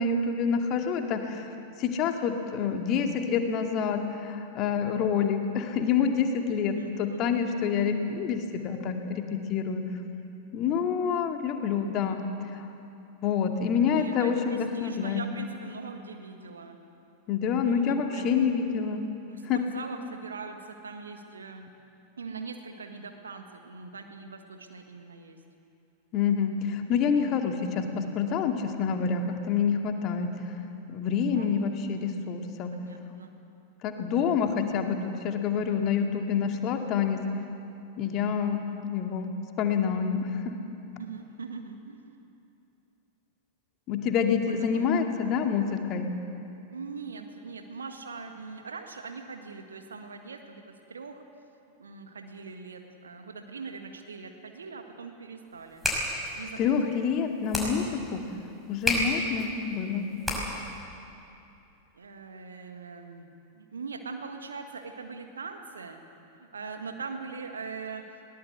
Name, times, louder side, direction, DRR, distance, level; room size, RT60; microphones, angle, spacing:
voice 1, 0.0-1.5 1.8-9.8 10.5-12.2 12.5-12.6 13.2-15.2 17.3-19.0 19.4-19.6 26.1-30.3 30.9-32.7 33.8-37.2 38.0-39.3 39.6-40.5 43.9-46.0 56.6-57.8 58.1-58.2 58.7-60.1, left 6 dB, 35° left, 4 dB, 2.3 m, -27 dB
voice 2, 6.8-7.3 13.8-16.8 17.7-18.7 19.3-21.7 22.2-25.4 27.1-27.2 31.4-31.5 32.8-33.3 41.0-42.2 44.6-44.9 46.7-50.6 50.9-51.2 51.8-55.8 56.4-56.6 56.9-57.0 62.0-63.3 63.6-66.0 66.5-68.0, right 4 dB, 70° right, 5 dB, 1.8 m, -41 dB
sound 1, 55.5-60.8, left 1 dB, ahead, 5.9 m, -32 dB
21.5 x 19.5 x 8.1 m, 2.7 s
figure-of-eight pair, 90°, 0 cm